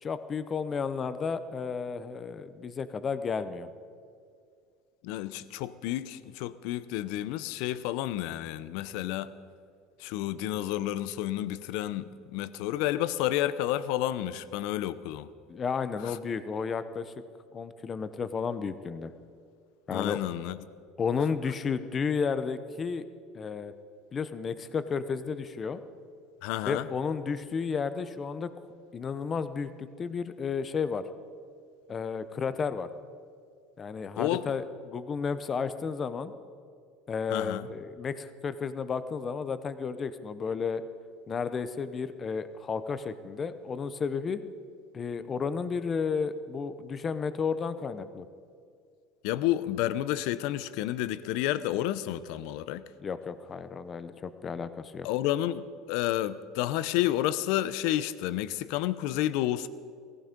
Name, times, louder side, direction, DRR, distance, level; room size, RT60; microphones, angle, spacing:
voice 1, 0.0-3.7 15.5-17.1 17.5-19.1 19.9-20.2 21.0-23.1 23.3-23.7 24.1-25.8 26.7-28.5 28.9-31.0 31.9-32.9 33.8-36.3 37.1-40.8 41.3-44.4 44.9-48.2 53.0-55.1, left 5 dB, 25° left, 12 dB, 0.7 m, -32 dB
voice 2, 5.0-9.3 10.0-15.3 16.0-16.2 19.9-20.6 26.4-26.9 34.2-34.4 37.3-37.7 49.2-52.8 55.0-59.7, left 13 dB, 65° left, 16 dB, 0.6 m, -30 dB
17.0 x 15.0 x 5.2 m, 2.2 s
cardioid pair, 155°, 0 cm